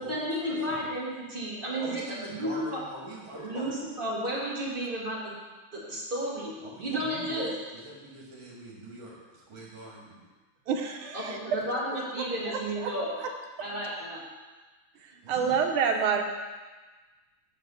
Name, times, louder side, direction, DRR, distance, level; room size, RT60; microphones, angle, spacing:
voice 1, 0.0-2.0 2.3-2.8 3.4-5.3 5.7-7.5 11.1-13.1 13.6-14.2, equal, 25° right, -6 dB, 2.1 m, -33 dB
voice 2, 1.8-3.7 6.6-10.2 15.2-15.6, right 2 dB, 65° right, -4 dB, 2.8 m, -42 dB
voice 3, 10.7-11.4 12.5-12.9 15.0-16.2, right 6 dB, 85° right, 3 dB, 1.7 m, -28 dB
6.5 x 5.3 x 6.9 m, 1.3 s
omnidirectional pair, 2.3 m